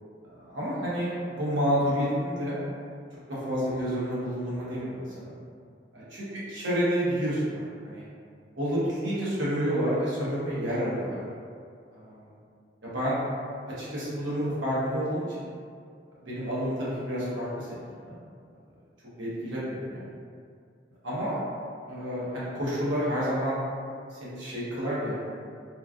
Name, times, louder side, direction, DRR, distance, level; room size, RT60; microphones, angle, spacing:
voice 1, 0.2-2.5 3.4-5.3 5.9-8.0 8.6-11.2 11.9-12.2 12.8-13.2 13.8-15.3 16.2-17.7 18.0-18.1 19.2-20.0 21.0-21.4 21.9-23.6 24.1-25.2, equal, 80° right, -8 dB, 0.9 m, -29 dB
3.0 x 2.3 x 2.4 m, 2.2 s
head